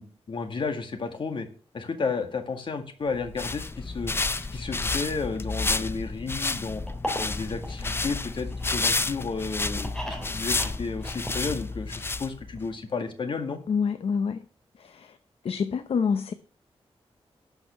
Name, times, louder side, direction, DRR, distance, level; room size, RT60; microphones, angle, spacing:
voice 1, 0.0-1.5 1.7-4.1 4.5-6.8 7.2-13.6, left 4 dB, 55° left, 2.0 m, -32 dB
sound 1, 3.1-12.6, left 3 dB, 25° left, 0.5 m, -30 dB
sound 2, 6.9-8.9 9.3-12.0 12.3-12.4 12.6-12.7, equal, 5° left, 3.1 m, -37 dB
voice 2, 13.7-14.4 15.0-15.1 15.4-16.3, left 6 dB, 70° left, 0.7 m, -26 dB
12.0 x 5.9 x 7.1 m
wide cardioid pair, 135°, 10 cm